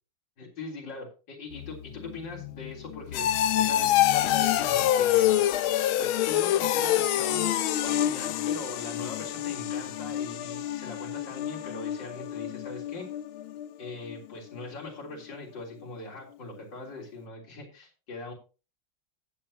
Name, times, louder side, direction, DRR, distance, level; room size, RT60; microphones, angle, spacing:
voice 1, 0.4-3.3 3.6-5.4 6.0-7.5 7.8-13.1 13.8-18.3, left 3 dB, 60° left, -2 dB, 4.3 m, -41 dB
sound 1, 1.5-14.2 14.5-14.9 15.3-15.4, left 12 dB, 85° left, 1.5 m, -27 dB
18.0 x 8.3 x 2.9 m, 0.33 s
omnidirectional pair, 2.2 m